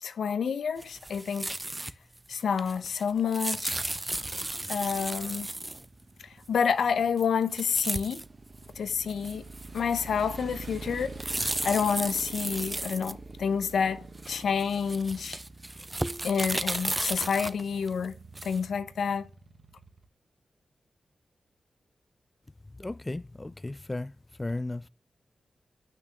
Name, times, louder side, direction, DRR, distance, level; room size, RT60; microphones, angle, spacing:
voice 1, 0.0-1.5 2.3-3.8 4.7-5.5 6.5-8.2 8.8-9.4 9.7-11.1 11.6-15.4 16.2-18.2 18.4-19.2, left 6 dB, 80° left, 0.7 m, -28 dB
sound 1, 0.8-1.9 2.2-5.9 7.2-7.3 7.5-8.3 8.6-8.7 9.1-10.2 10.6-13.7 14.2-18.7, right 1 dB, 25° right, 0.6 m, -34 dB
Motorcycle, 4.3-20.1, right 3 dB, 50° right, 1.2 m, -46 dB
voice 2, 22.8-24.1 24.4-24.9, left 2 dB, 25° left, 0.3 m, -35 dB
6.6 x 6.4 x 6.0 m
cardioid pair, 45°, 0 cm